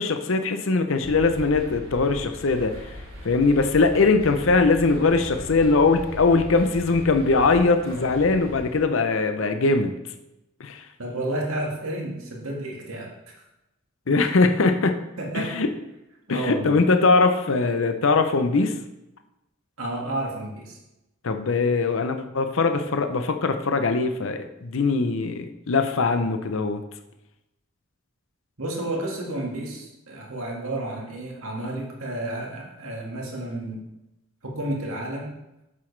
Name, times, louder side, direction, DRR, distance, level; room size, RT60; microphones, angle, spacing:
voice 1, 0.0-2.7 3.2-9.9 10.6-10.8 14.1-15.0 15.3-15.7 16.3-18.7 21.2-26.8, left 3 dB, 70° left, 7 dB, 0.6 m, -21 dB
sound 1, 1.0-8.8, equal, 65° right, 2.9 m, -39 dB
voice 2, 11.0-13.1 15.2-15.6 16.3-16.7 19.8-20.8 28.6-33.8 34.4-35.3, right 1 dB, 80° right, -1 dB, 2.0 m, -31 dB
7.6 x 7.6 x 3.3 m, 0.91 s
head